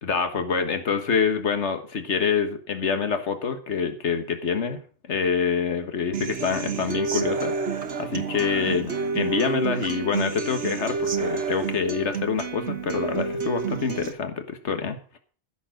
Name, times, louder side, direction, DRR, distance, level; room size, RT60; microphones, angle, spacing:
voice 1, 0.0-4.8 5.1-15.0, left 5 dB, 85° left, 8 dB, 1.7 m, -26 dB
Human voice / Acoustic guitar, 6.1-14.1, right 5 dB, 80° right, 1.6 m, -29 dB
14.5 x 7.1 x 6.5 m, 0.42 s
omnidirectional pair, 1.2 m